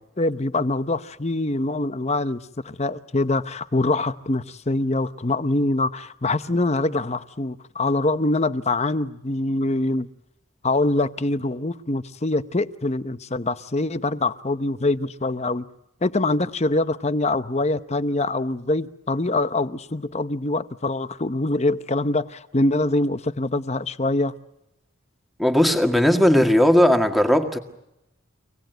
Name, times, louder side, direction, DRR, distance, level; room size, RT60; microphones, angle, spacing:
voice 1, 0.2-10.1 10.6-15.7 16.0-24.3, left 2 dB, 30° left, 0.8 m, -24 dB
voice 2, 25.4-27.6, equal, ahead, 1.8 m, -17 dB
25.5 x 19.0 x 9.1 m
head